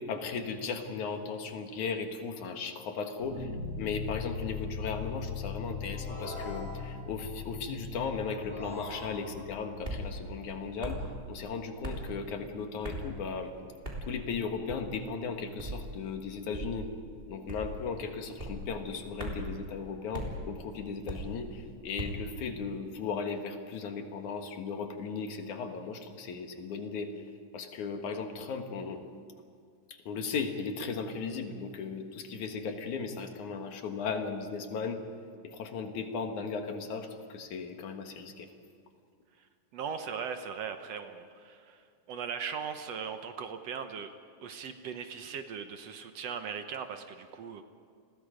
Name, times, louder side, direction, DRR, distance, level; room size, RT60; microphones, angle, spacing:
voice 1, 0.1-11.0 11.3-13.5 14.1-16.9 17.3-27.1 27.5-29.1 29.9-35.0 35.4-38.5, left 5 dB, 75° left, 5 dB, 3.1 m, -36 dB
sound 1, 3.2-12.3, left 5 dB, 55° left, 4.2 m, -41 dB
sound 2, 5.9-7.2 8.3-9.6, equal, 25° left, 4.7 m, -44 dB
sound 3, 9.8-10.1 10.8-11.1 11.8-12.1 12.8-13.1 13.8-14.1 14.7-15.0 15.6-15.8 16.5-16.8 17.5-17.8 18.4-18.6 19.2-19.5 20.1-20.3 21.1-21.4 22.0-22.2, right 1 dB, 15° right, 3.6 m, -38 dB
voice 2, 39.7-44.1 44.4-47.6, right 6 dB, 65° right, 7 dB, 2.0 m, -39 dB
29.5 x 21.5 x 5.2 m, 2.3 s
omnidirectional pair, 3.5 m